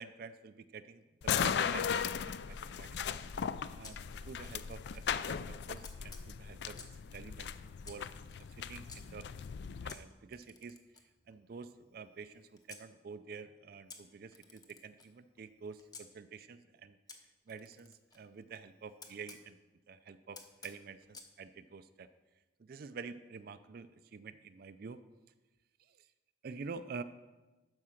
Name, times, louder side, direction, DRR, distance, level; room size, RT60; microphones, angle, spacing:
voice 1, 0.0-3.3 3.7-4.0 4.3-7.5 7.9-8.1 8.5-9.3 9.8-17.0 17.5-19.6 19.9-22.1 22.6-25.0 25.8-26.1 26.4-27.0, right 5 dB, 50° right, 11 dB, 0.4 m, -48 dB
sound 1, 1.2-9.9, left 7 dB, 60° left, 0.3 m, -37 dB
Camera, 3.8-5.1 5.8-7.1 7.8-9.0 9.9-12.9 13.9-16.1 17.1-19.4 20.3-21.3, left 4 dB, 20° left, 0.8 m, -56 dB
12.5 x 4.9 x 5.8 m, 1.1 s
head